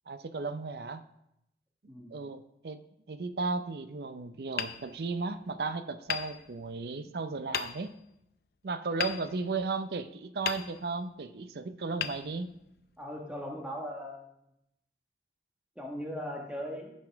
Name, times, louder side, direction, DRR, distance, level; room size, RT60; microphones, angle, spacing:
voice 1, 0.1-1.0 2.1-2.8 3.1-7.9 8.6-12.5, right 4 dB, 65° right, 11 dB, 0.5 m, -35 dB
Hammer, 4.5-5.6 6.1-7.0 7.5-8.1 9.0-10.0 10.4-11.2 12.0-12.9, left 8 dB, 60° left, 0.5 m, -38 dB
voice 2, 13.0-14.3 15.8-16.9, equal, 5° right, -1 dB, 1.3 m, -39 dB
14.5 x 5.3 x 3.5 m, 0.81 s
head